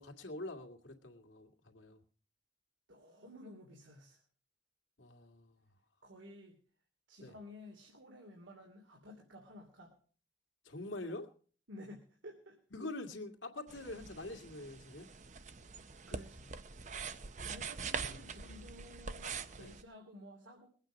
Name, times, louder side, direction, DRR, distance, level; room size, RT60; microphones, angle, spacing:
voice 1, 0.0-2.0 5.0-5.7 7.2-7.3 10.6-11.3 12.7-15.1 16.1-16.2 17.9-18.2 19.6-19.7, left 2 dB, 80° left, 5 dB, 2.2 m, -45 dB
voice 2, 2.9-4.2 6.0-6.5 7.1-9.9 11.7-12.6 16.1-16.5 17.4-20.7, left 1 dB, 85° right, 1 dB, 2.9 m, -53 dB
sound 1, 13.7-19.8, right 5 dB, 40° right, 0.7 m, -44 dB
21.5 x 8.9 x 5.2 m, 0.43 s
head